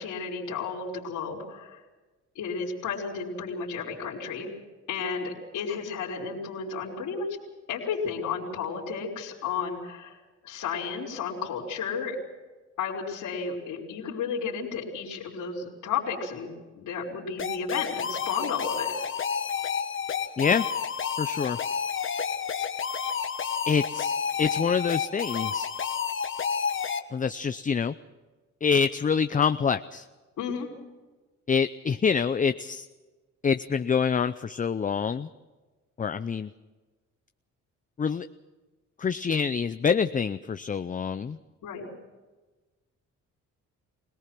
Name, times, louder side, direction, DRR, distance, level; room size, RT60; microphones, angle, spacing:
voice 1, 0.0-1.8 2.3-4.5 4.9-7.3 7.7-10.2 10.4-12.2 12.8-18.9 30.4-30.7 41.6-41.9, left 5 dB, 80° left, -6 dB, 4.0 m, -33 dB
sound 1, 17.4-27.0, left 7 dB, 40° left, 1.4 m, -30 dB
voice 2, 21.2-21.6 23.7-24.1 24.4-25.7 27.1-27.9 28.6-30.1 31.5-32.9 33.4-35.3 36.0-36.5 38.0-38.3 39.0-41.4, left 6 dB, 25° left, 11 dB, 0.6 m, -26 dB
24.5 x 18.5 x 6.1 m, 1.2 s
cardioid pair, 90°, 30 cm